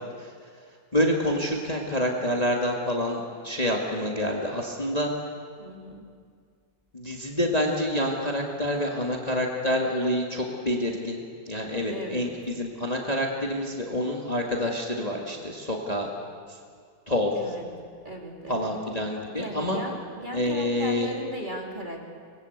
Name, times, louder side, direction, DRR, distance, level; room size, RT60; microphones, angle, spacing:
voice 1, 0.9-5.1 6.9-16.1 16.5-16.6 17.1-17.3 18.5-19.8 20.3-21.1, left 1 dB, 20° left, 0 dB, 2.3 m, -27 dB
voice 2, 5.6-6.1 11.9-12.3 17.3-17.7 18.0-18.7 19.3-22.1, right 1 dB, 25° right, 0 dB, 3.0 m, -37 dB
25.5 x 21.5 x 8.2 m, 2.1 s
omnidirectional pair, 2.2 m